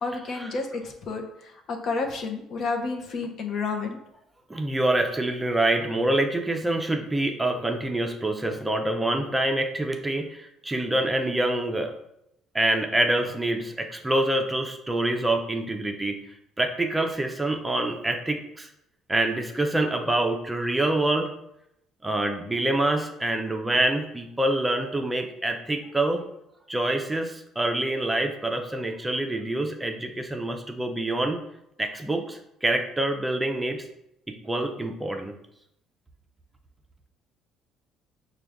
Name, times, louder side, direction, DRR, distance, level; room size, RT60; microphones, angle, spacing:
voice 1, 0.0-4.0, left 4 dB, 55° left, 3 dB, 0.7 m, -30 dB
voice 2, 4.5-11.9 12.5-16.2 16.6-18.7 19.1-21.3 22.0-26.2 26.7-31.4 31.8-33.8 34.3-35.3, right 1 dB, 15° right, 4 dB, 0.5 m, -26 dB
4.8 x 2.2 x 3.5 m, 0.79 s
cardioid pair, 95°, 0 cm